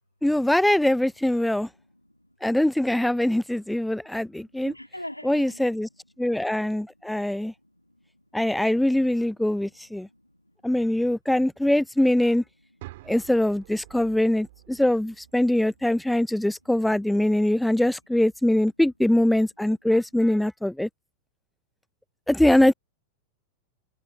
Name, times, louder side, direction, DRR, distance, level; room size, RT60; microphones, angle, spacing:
voice 1, 0.2-1.7 2.4-4.7 5.2-5.9 6.2-7.5 8.3-10.1 10.6-12.4 13.1-20.9 22.3-22.7, left 1 dB, 5° left, 0.5 m, -22 dB
voice 2, 1.5-2.4 3.2-5.6 5.9-8.4 9.6-10.9 12.7-13.1 14.7-14.8 16.1-16.5, left 1 dB, 90° left, 2.5 m, -48 dB
sound 1, 12.8-16.8, right 18 dB, 50° right, 3.9 m, -49 dB
figure-of-eight pair, 90°, 0 cm